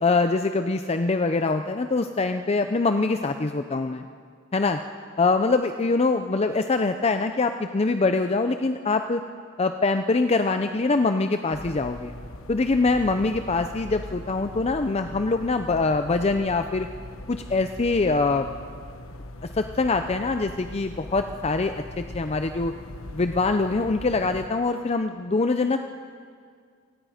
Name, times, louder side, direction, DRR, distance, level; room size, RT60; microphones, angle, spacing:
voice 1, 0.0-4.0 4.5-4.8 5.2-9.2 9.6-12.1 12.5-16.9 17.3-18.5 19.5-22.7 23.1-25.8, left 3 dB, 30° left, 8 dB, 0.6 m, -24 dB
sound 1, 11.5-24.5, left 1 dB, 90° left, 1.1 m, -41 dB
28.0 x 18.5 x 5.0 m, 2.1 s
head